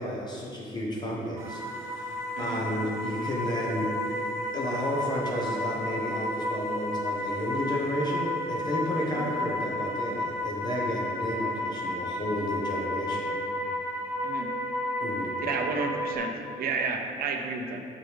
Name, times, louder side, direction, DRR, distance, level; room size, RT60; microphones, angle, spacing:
voice 1, 0.0-4.2 4.5-13.3 15.0-15.5, equal, 25° left, -3 dB, 1.1 m, -32 dB
sound 1, 1.4-16.2, left 1 dB, 15° right, 1.2 m, -32 dB
voice 2, 15.4-16.3 16.6-17.8, right 4 dB, 60° right, 4 dB, 0.8 m, -31 dB
7.9 x 6.5 x 3.5 m, 2.4 s
cardioid pair, 110°, 17 cm